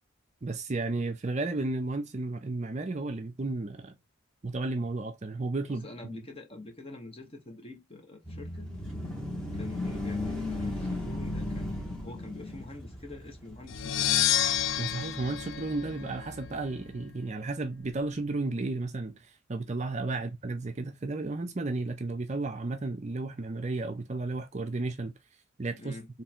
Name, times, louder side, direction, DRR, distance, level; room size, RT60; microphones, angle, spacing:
voice 1, 0.4-4.0 4.4-6.2 14.8-25.1 25.6-26.0, right 2 dB, 30° right, 0.5 m, -33 dB
voice 2, 5.7-8.7 9.5-14.5 20.2-20.3 25.8-26.1, left 2 dB, 25° left, 1.1 m, -45 dB
sound 1, 8.2-17.1, left 1 dB, 5° left, 1.2 m, -37 dB
sound 2, 13.7-16.5, left 10 dB, 55° left, 0.4 m, -29 dB
3.6 x 3.2 x 4.4 m
head